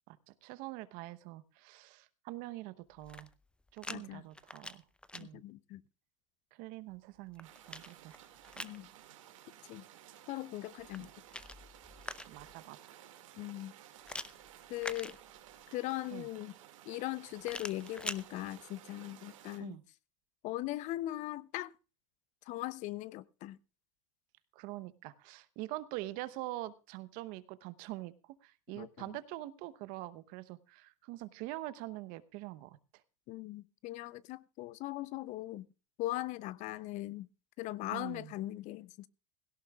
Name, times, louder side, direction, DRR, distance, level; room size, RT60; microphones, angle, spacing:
voice 1, 0.1-3.3 3.7-4.8 5.1-5.4 6.5-8.2 8.6-8.9 11.0-11.1 12.3-12.9 16.1-16.3 19.6-19.8 24.5-32.8 37.9-38.3, right 17 dB, 55° right, 0.9 m, -44 dB
sound 1, 2.9-4.0 4.3-5.2 6.9-8.8 10.8-12.6 14.0-15.6 17.4-18.2, left 2 dB, 5° left, 0.5 m, -45 dB
voice 2, 3.9-4.2 5.2-5.8 8.6-8.9 9.7-9.8 10.3-11.1 13.3-13.7 14.7-15.2 15.7-16.5 16.9-19.8 20.4-21.7 22.5-23.6 28.7-29.2 33.3-35.7 36.0-37.3 37.6-39.1, left 16 dB, 45° left, 0.6 m, -40 dB
sound 2, 7.4-19.6, right 11 dB, 80° right, 2.1 m, -56 dB
17.0 x 17.0 x 2.3 m
hypercardioid pair, 100°, 17 cm